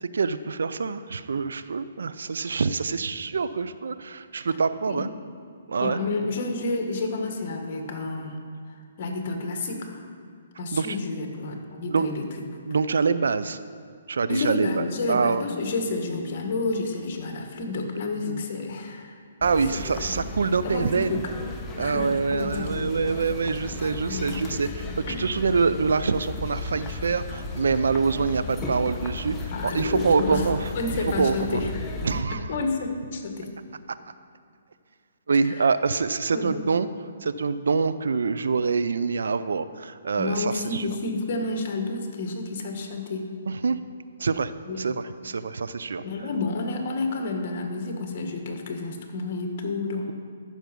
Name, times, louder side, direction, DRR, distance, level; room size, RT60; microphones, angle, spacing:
voice 1, 0.0-5.1 5.7-6.0 10.7-11.0 11.9-12.1 12.7-13.6 14.1-15.4 18.2-18.4 19.4-21.2 21.8-29.4 29.6-30.7 31.2-31.6 32.0-32.5 35.3-36.9 37.2-40.9 43.5-43.8 44.2-46.3, right 5 dB, 80° right, 13 dB, 0.5 m, -25 dB
voice 2, 5.8-8.4 9.0-10.0 10.6-12.2 14.3-19.1 20.1-20.2 20.6-21.2 21.8-22.9 24.0-24.6 25.1-25.2 29.5-30.4 30.7-31.9 32.5-33.5 35.5-35.7 36.3-36.7 40.2-43.2 44.7-44.8 46.0-50.1, left 3 dB, 45° left, 3 dB, 1.7 m, -30 dB
sound 1, 19.4-32.2, left 2 dB, 15° left, 0.9 m, -35 dB
13.5 x 6.1 x 5.3 m, 2.1 s
hypercardioid pair, 150°, 0 cm